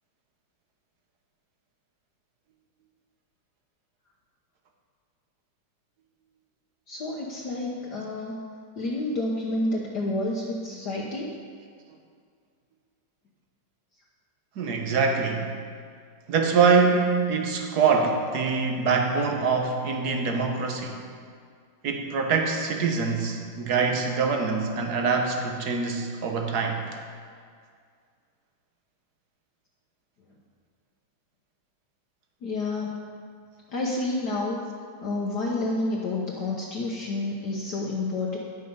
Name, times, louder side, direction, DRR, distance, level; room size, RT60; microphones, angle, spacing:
voice 1, 6.9-8.4 8.8-11.3 32.4-33.1 33.7-34.6 35.0-38.4, left 2 dB, 60° left, -3 dB, 1.4 m, -29 dB
voice 2, 14.6-15.5 16.3-21.0 21.8-26.8, right 5 dB, 55° right, 3 dB, 1.5 m, -24 dB
10.5 x 7.7 x 5.4 m, 2.1 s
omnidirectional pair, 2.2 m